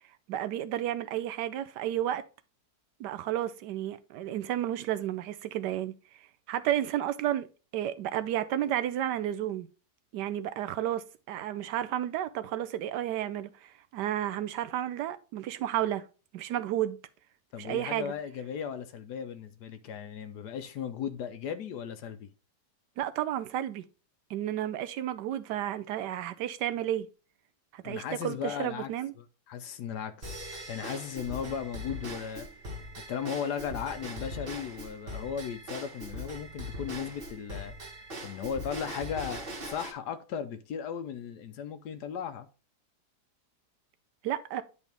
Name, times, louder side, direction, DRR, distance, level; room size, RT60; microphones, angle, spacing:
voice 1, 0.3-2.2 3.0-5.9 6.5-7.5 7.7-9.7 10.1-16.0 16.3-17.0 17.6-18.1 23.0-23.8 24.3-27.1 27.7-29.1 44.2-44.6, right 12 dB, 90° right, 1.3 m, -32 dB
voice 2, 17.5-22.3 27.8-28.9 29.2-32.5 33.1-37.7 38.2-42.5, left 8 dB, 80° left, 1.3 m, -36 dB
Drum kit / Drum / Bell, 30.2-39.9, equal, 35° right, 1.5 m, -41 dB
9.8 x 4.1 x 3.4 m
omnidirectional pair, 1.8 m